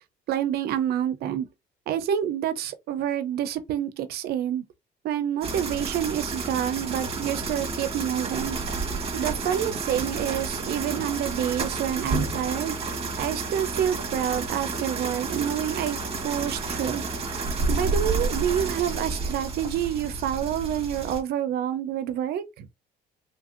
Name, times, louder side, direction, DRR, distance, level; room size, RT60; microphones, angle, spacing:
voice 1, 0.3-1.5 1.9-4.6 5.0-8.6 9.1-12.7 13.2-16.0 16.2-17.0 17.7-22.4, right 10 dB, 70° right, 0.6 m, -28 dB
sound 1, 5.4-21.2, right 3 dB, 35° right, 1.1 m, -30 dB
3.2 x 2.6 x 2.4 m
cardioid pair, 110°, 17 cm